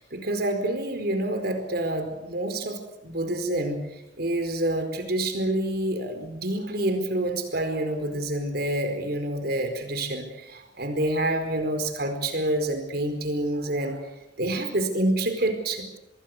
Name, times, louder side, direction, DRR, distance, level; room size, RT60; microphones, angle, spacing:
voice 1, 0.0-3.9 4.2-14.1 14.4-16.0, right 1 dB, 60° right, 7 dB, 4.5 m, -27 dB
25.5 x 21.5 x 6.8 m, 0.88 s
head